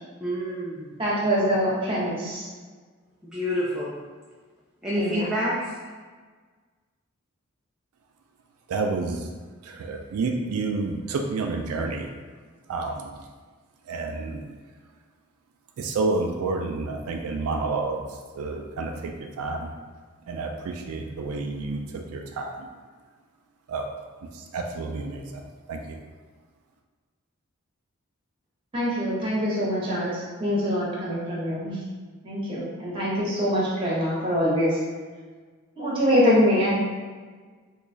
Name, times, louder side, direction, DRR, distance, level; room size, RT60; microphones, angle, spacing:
voice 1, 0.2-1.0 3.2-3.9 4.8-5.7, equal, 5° right, -8 dB, 0.3 m, -28 dB
voice 2, 1.0-2.5 5.0-5.2 28.7-31.8 32.2-34.8 35.8-36.8, equal, 25° right, -7 dB, 1.0 m, -24 dB
voice 3, 8.7-9.2 9.9-12.1 12.7-12.9 13.9-14.4 15.8-18.0 18.4-18.9 19.4-19.7 20.3-21.8 22.1-22.6 23.7-23.8 24.5-25.2 25.7-25.8, right 3 dB, 85° right, 3 dB, 0.4 m, -29 dB
2.9 x 2.3 x 3.8 m, 1.5 s
head